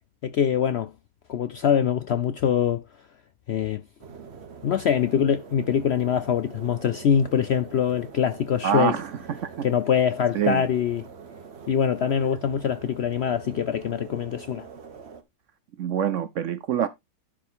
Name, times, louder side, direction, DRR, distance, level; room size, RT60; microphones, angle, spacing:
voice 1, 0.2-0.9 1.3-2.8 3.5-3.8 4.6-8.9 9.6-11.1 11.7-14.6, left 8 dB, 70° left, 0.6 m, -23 dB
sound 1, 4.0-15.2, right 6 dB, 45° right, 1.2 m, -44 dB
voice 2, 8.6-9.7 10.3-10.6 15.8-16.9, right 9 dB, 65° right, 0.8 m, -26 dB
11.5 x 4.8 x 3.6 m
omnidirectional pair, 1.7 m